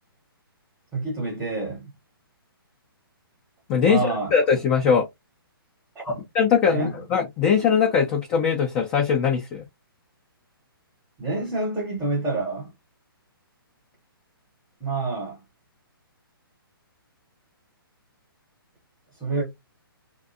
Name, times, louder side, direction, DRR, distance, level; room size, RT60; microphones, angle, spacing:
voice 1, 0.9-1.8 3.8-4.3 5.9-6.2 6.7-6.9 11.2-12.7 14.8-15.4 19.2-19.5, right 3 dB, 5° right, 0.8 m, -27 dB
voice 2, 4.3-5.1 6.4-9.6, left 6 dB, 20° left, 0.4 m, -21 dB
2.6 x 2.1 x 2.5 m
hypercardioid pair, 150°, 13 cm